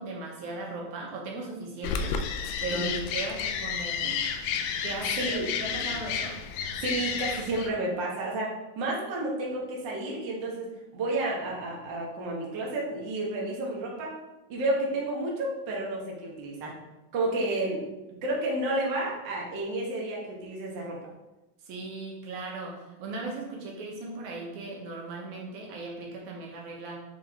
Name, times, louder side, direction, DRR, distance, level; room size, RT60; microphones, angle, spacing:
voice 1, 0.0-2.2 2.6-4.3 4.8-6.4 21.6-27.0, right 2 dB, 65° right, -1 dB, 2.2 m, -37 dB
sound 1, 1.8-7.7, left 7 dB, 85° left, 2.3 m, -31 dB
voice 2, 2.7-3.0 5.2-5.5 6.8-14.1 14.5-16.7 17.1-17.8 18.2-21.0, right 2 dB, 80° right, -3 dB, 1.0 m, -31 dB
7.0 x 4.3 x 3.6 m, 1.0 s
omnidirectional pair, 4.1 m